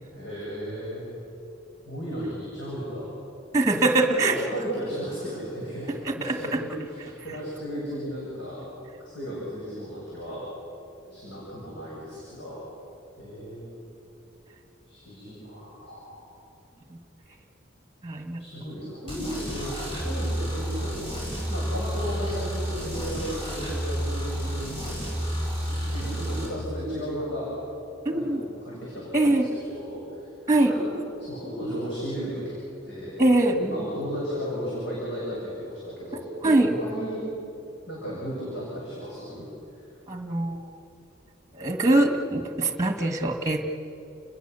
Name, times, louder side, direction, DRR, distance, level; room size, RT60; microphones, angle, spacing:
voice 1, 0.1-1.1 1.8-3.1 3.7-8.7 9.0-10.4 11.1-12.6 13.2-13.7 14.9-16.3 18.4-21.0 21.5-25.0 25.9-27.5 28.1-30.3 30.6-32.4 32.8-33.1 33.5-37.3 37.9-39.5 39.7-39.9, equal, 60° left, -7 dB, 7.8 m, -35 dB
voice 2, 3.5-4.3 6.2-6.4 18.0-18.4 28.1-28.4 29.1-29.4 30.5-30.7 33.2-33.6 36.4-36.7 40.1-40.6 41.5-43.7, right 2 dB, 15° right, 5 dB, 1.7 m, -22 dB
sound 1, 19.1-26.5, equal, 25° left, 6.9 m, -30 dB
30.0 x 21.0 x 7.0 m, 2.7 s
head